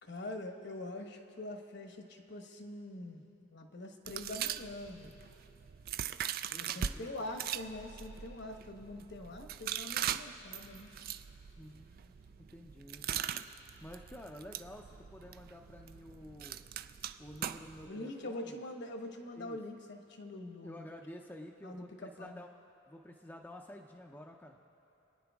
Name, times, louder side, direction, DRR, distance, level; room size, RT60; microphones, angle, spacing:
voice 1, 0.0-5.2 6.5-10.9 17.9-20.8 21.6-22.4, left 1 dB, 50° left, 4 dB, 1.1 m, -44 dB
sound 1, 4.1-6.9 7.3-17.9, right 9 dB, 45° right, 0.3 m, -41 dB
voice 2, 6.5-7.1 11.6-12.2 12.5-13.4 13.8-16.6 17.2-18.5 19.4-19.6 20.6-22.5 22.9-24.6, left 1 dB, 10° left, 1 dB, 0.5 m, -50 dB
29.0 x 9.8 x 3.5 m, 2.9 s
head